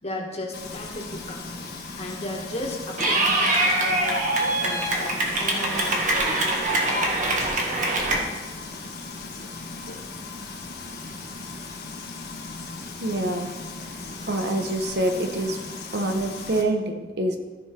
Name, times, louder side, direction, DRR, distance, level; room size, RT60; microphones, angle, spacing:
voice 1, 0.0-4.3 4.6-6.7, left 1 dB, 35° left, 0 dB, 1.5 m, -36 dB
Frying (food), 0.5-16.6, left 3 dB, 60° left, 1.3 m, -37 dB
Clapping / Cheering, 3.0-8.2, right 2 dB, 45° right, 1.5 m, -23 dB
voice 2, 13.0-13.5 14.3-15.6 15.9-17.4, right 1 dB, 65° right, 5 dB, 0.9 m, -26 dB
14.0 x 4.9 x 4.4 m, 1.3 s
head